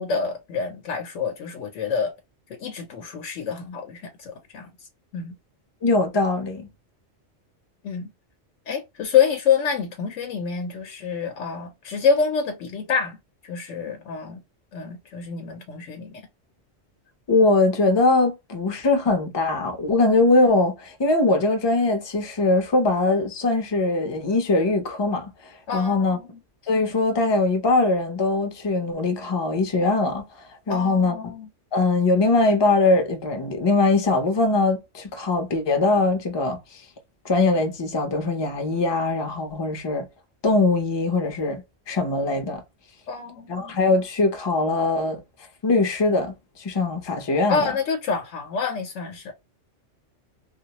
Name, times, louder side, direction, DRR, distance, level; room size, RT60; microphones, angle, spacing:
voice 1, 0.0-2.1 2.5-4.7 5.1-5.3 7.8-8.1 8.7-13.2 13.4-14.4 14.7-16.2 25.7-26.4 30.7-31.5 43.1-43.8 47.5-49.3, left 6 dB, 85° left, 1.0 m, -27 dB
voice 2, 5.8-6.7 17.3-25.3 25.7-26.2 26.7-30.2 30.7-31.1 31.7-36.6 37.2-40.1 40.4-41.6 41.9-42.6 43.5-45.2 45.6-47.7, left 3 dB, 30° left, 0.5 m, -21 dB
2.2 x 2.0 x 2.7 m
omnidirectional pair, 1.2 m